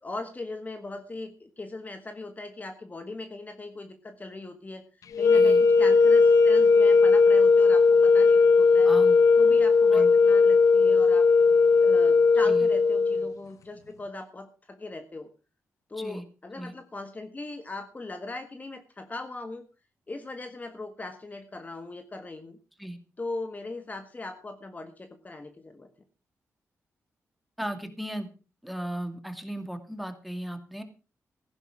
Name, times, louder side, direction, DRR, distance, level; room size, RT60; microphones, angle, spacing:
voice 1, 0.0-4.8 5.2-8.9 9.4-11.2 11.8-15.3 15.9-19.7 20.1-22.6 23.2-25.9, left 2 dB, 30° left, 8 dB, 1.7 m, -39 dB
sound 1, 5.1-13.3, left 4 dB, 75° left, 0.8 m, -18 dB
voice 2, 5.3-5.6 8.8-9.2 9.9-10.1 12.4-12.7 16.0-16.2 16.6-16.7 22.8-23.0 27.6-28.3 28.6-30.8, right 1 dB, ahead, 8 dB, 2.4 m, -36 dB
15.5 x 11.0 x 5.0 m, 0.34 s
cardioid pair, 95°, 6 cm